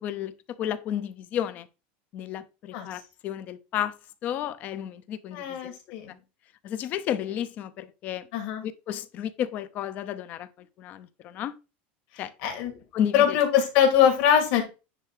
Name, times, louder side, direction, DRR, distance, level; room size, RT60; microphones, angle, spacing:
voice 1, 0.0-1.7 2.1-5.8 6.6-8.3 8.6-10.5 10.8-11.5 12.2-12.3 12.9-13.4, left 10 dB, 30° left, 0.6 m, -32 dB
voice 2, 5.3-6.2 8.3-8.6 12.1-12.7 13.1-14.6, left 9 dB, 55° left, 2.6 m, -23 dB
10.0 x 3.5 x 4.9 m
supercardioid pair, 175°, 5 cm